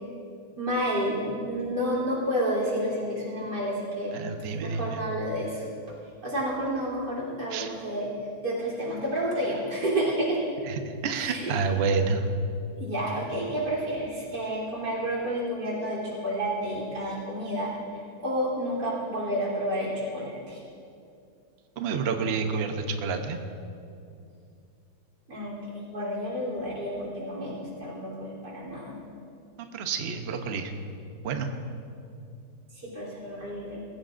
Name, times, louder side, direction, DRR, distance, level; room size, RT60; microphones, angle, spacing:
voice 1, 0.6-4.1 4.6-5.6 6.2-8.1 8.4-10.4 11.1-11.6 12.8-17.7 18.2-20.6 25.3-29.0 32.7-33.8, equal, 75° right, -5 dB, 4.1 m, -30 dB
voice 2, 4.1-5.0 7.5-7.7 10.7-12.3 21.8-23.4 29.7-30.7 31.2-31.5, right 5 dB, 45° right, 5 dB, 0.9 m, -29 dB
20.0 x 15.5 x 2.5 m, 2.5 s
omnidirectional pair, 1.8 m